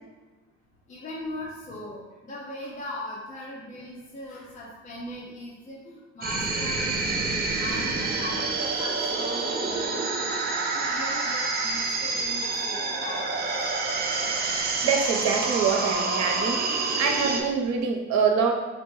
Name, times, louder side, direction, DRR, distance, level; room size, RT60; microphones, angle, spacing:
voice 1, 0.9-7.3 7.6-10.3 10.7-13.2 13.6-13.7, left 1 dB, 25° left, -5 dB, 0.6 m, -39 dB
sound 1, 6.2-17.4, right 3 dB, 35° right, 0.5 m, -28 dB
voice 2, 14.6-16.6 17.0-18.5, right 5 dB, 65° right, 3 dB, 0.7 m, -25 dB
4.0 x 2.2 x 4.6 m, 1.2 s
cardioid pair, 140°, 29 cm